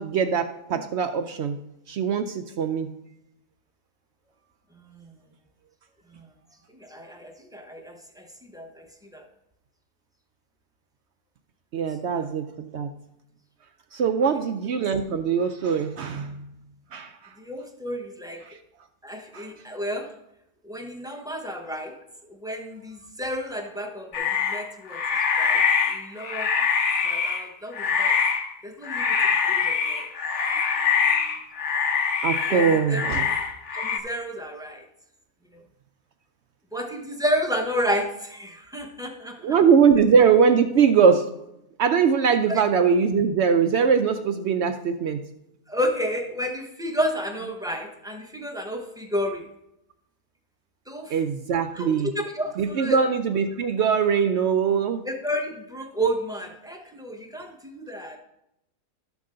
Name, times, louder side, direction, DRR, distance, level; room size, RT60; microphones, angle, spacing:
voice 1, 0.0-1.6 1.9-2.9 11.7-12.9 13.9-16.5 16.9-17.2 18.5-18.6 19.3-19.5 32.2-33.3 39.4-41.3 41.8-45.2 51.1-52.1 52.6-55.0, right 6 dB, 75° right, 8 dB, 0.6 m, -21 dB
voice 2, 4.8-5.1 6.1-6.3 6.8-8.3 8.5-9.3 12.1-12.3 17.4-18.5 19.0-20.1 20.6-22.0 22.2-25.0 25.4-25.6 25.9-26.5 27.0-28.2 28.6-29.2 29.4-30.1 32.5-33.0 33.7-34.8 35.5-35.6 36.7-39.6 42.5-42.6 45.7-49.5 50.9-51.2 51.7-53.0 55.0-58.2, equal, 5° right, 3 dB, 0.3 m, -31 dB
sound 1, 24.1-27.5 27.7-28.5 28.8-34.0, left 6 dB, 55° left, 1.1 m, -24 dB
12.5 x 6.1 x 3.7 m, 0.83 s
omnidirectional pair, 1.7 m